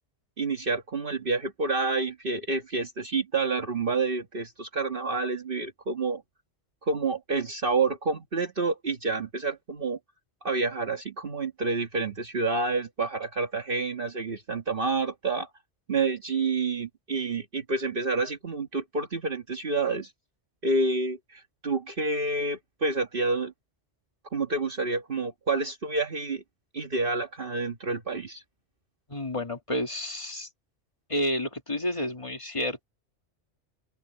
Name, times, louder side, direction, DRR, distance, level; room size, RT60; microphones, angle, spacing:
voice 1, 0.4-6.2 6.8-10.0 10.4-15.5 15.9-20.1 20.6-23.5 24.3-26.4 26.7-28.4, right 3 dB, 50° right, 1.7 m, -28 dB
voice 2, 29.1-30.5 31.1-32.8, left 1 dB, 30° left, 2.2 m, -30 dB
open air
omnidirectional pair, 1.2 m